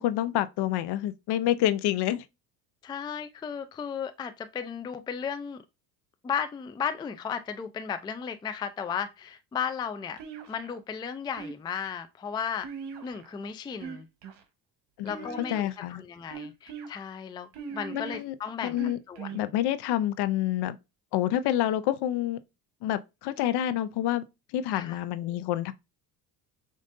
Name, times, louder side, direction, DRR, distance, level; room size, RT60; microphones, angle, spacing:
voice 1, 0.0-2.3 15.0-16.0 17.9-18.3 18.6-19.0 19.3-20.8 21.1-22.4 22.8-24.2 24.5-25.7, left 12 dB, 60° left, 0.6 m, -28 dB
voice 2, 2.8-5.6 6.2-10.2 10.5-12.7 13.0-14.1 15.0-15.7 16.0-18.8 19.1-19.5 24.7-25.0 25.3-25.4, left 7 dB, 10° left, 0.3 m, -35 dB
sound 1, 10.2-10.8 11.4-11.9 12.6-13.3 13.7-14.4 15.1-15.8 16.3-16.9 17.5-18.2 18.8-19.4, right 6 dB, 65° right, 1.1 m, -40 dB
5.1 x 2.6 x 2.5 m
supercardioid pair, 80°, 45 cm